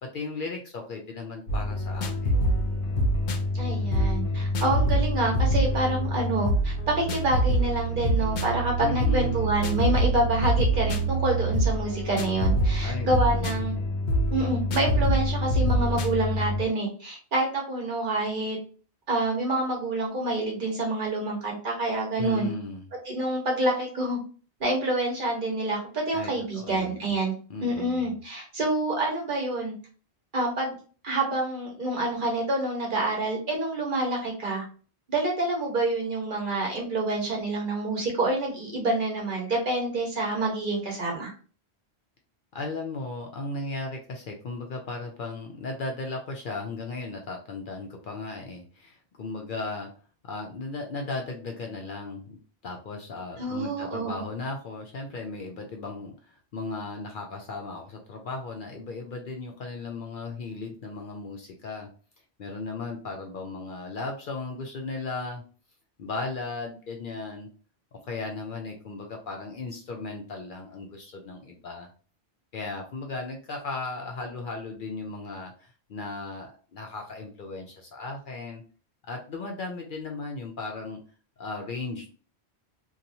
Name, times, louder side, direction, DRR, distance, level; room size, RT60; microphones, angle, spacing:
voice 1, 0.0-2.5 8.8-9.5 12.8-13.8 22.2-22.9 26.1-27.1 27.5-28.2 42.5-49.9 50.3-61.9 62.4-65.4 66.0-67.5 67.9-71.9 72.5-78.6 79.1-81.0 81.4-82.1, left 3 dB, 60° left, 2 dB, 0.6 m, -36 dB
sound 1, 1.5-16.7, right 1 dB, 85° left, 0.9 m, -25 dB
voice 2, 3.5-13.7 14.3-18.6 19.1-22.5 23.1-24.2 24.6-27.3 27.6-29.7 30.3-30.7 31.0-34.6 35.1-41.3 53.4-54.2, right 2 dB, 50° right, 0 dB, 1.1 m, -27 dB
2.9 x 2.3 x 2.6 m, 0.39 s
omnidirectional pair, 1.1 m